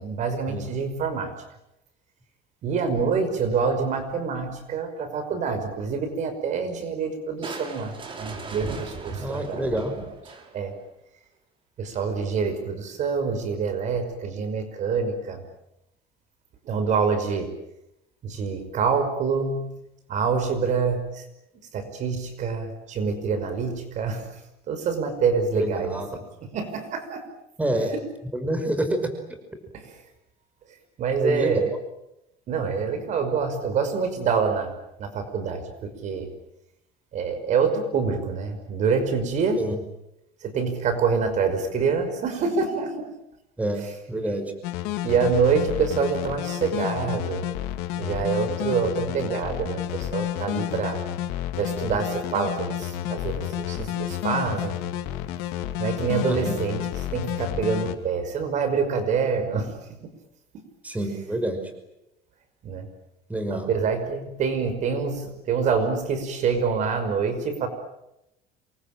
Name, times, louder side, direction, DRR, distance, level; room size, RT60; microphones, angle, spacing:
voice 1, 0.0-1.3 2.6-9.6 10.0-10.1 10.5-10.8 11.8-15.4 16.6-17.5 18.2-19.8 20.1-21.3 21.7-24.4 24.7-26.0 26.4-27.3 29.7-29.9 31.0-31.7 32.5-34.7 35.0-36.3 37.1-39.7 40.4-43.1 45.0-47.5 48.0-51.0 51.6-54.8 55.8-59.8 60.5-60.6 62.6-62.9 63.5-67.7, right 5 dB, 50° right, 9 dB, 5.6 m, -26 dB
Crushing, 7.4-10.8, right 4 dB, 30° right, 5.4 m, -37 dB
voice 2, 9.2-9.9 25.6-26.1 27.6-27.9 28.3-29.0 31.2-31.6 39.6-39.8 43.6-44.5 56.2-56.6 60.8-61.7 63.3-63.7, right 1 dB, 10° right, 6 dB, 5.4 m, -27 dB
sound 1, 44.6-57.9, left 12 dB, 90° left, 2.9 m, -30 dB
27.5 x 23.0 x 9.1 m, 0.87 s
cardioid pair, 140°, 16 cm